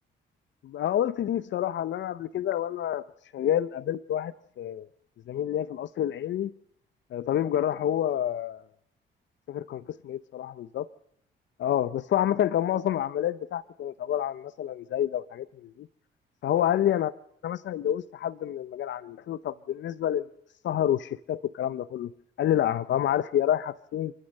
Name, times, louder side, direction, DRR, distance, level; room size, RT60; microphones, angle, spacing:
voice 1, 0.6-3.0 3.3-4.9 5.3-6.5 7.1-8.6 9.5-10.9 11.6-15.9 16.4-17.1 17.4-20.3 20.6-22.1 22.4-24.1, left 11 dB, 65° left, 0.7 m, -28 dB
27.5 x 14.5 x 6.6 m
cardioid pair, 90°, 20 cm